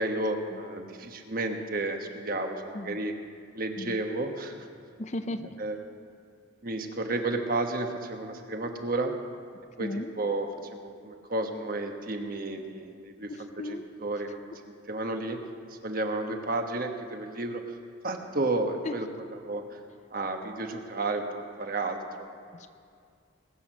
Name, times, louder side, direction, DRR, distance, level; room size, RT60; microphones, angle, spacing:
voice 1, 0.0-3.1 3.5-4.7 5.6-5.8 6.6-9.1 9.8-9.9 10.2-10.5 10.7-13.3 13.7-14.4 14.9-15.4 15.8-17.6 18.0-19.1 19.4-19.8 20.1-22.4, right 2 dB, 45° right, 4 dB, 1.2 m, -32 dB
voice 2, 5.0-5.6 9.8-10.1 13.3-13.9 18.8-19.0 22.5-22.7, left 1 dB, 35° left, 9 dB, 0.5 m, -36 dB
20.5 x 8.0 x 6.4 m, 2.3 s
head